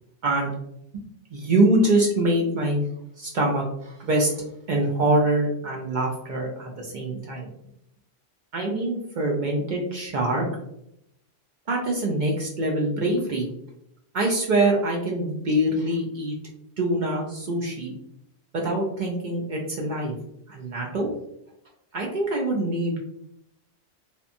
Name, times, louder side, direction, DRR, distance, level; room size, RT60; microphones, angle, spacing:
voice 1, 1.3-2.8 3.2-7.5 8.5-10.5 11.7-13.5 14.1-16.3 16.8-17.9 18.5-20.2 20.5-21.1 21.9-23.0, right 1 dB, 60° right, -1 dB, 0.5 m, -24 dB
2.8 x 2.1 x 2.5 m, 0.77 s
omnidirectional pair, 1.2 m